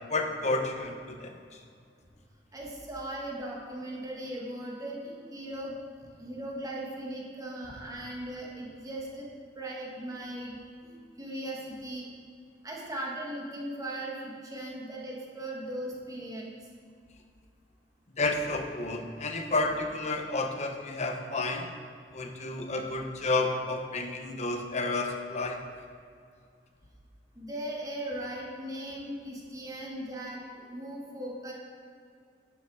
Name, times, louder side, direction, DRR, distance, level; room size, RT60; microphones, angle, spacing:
voice 1, 0.1-1.6 18.2-21.7 22.1-25.6, left 2 dB, 40° left, 4 dB, 1.0 m, -31 dB
voice 2, 2.5-5.8 6.2-9.1 9.6-12.1 12.6-16.4 27.3-31.5, right 1 dB, 20° right, -3 dB, 1.7 m, -38 dB
11.0 x 6.9 x 4.8 m, 2.2 s
head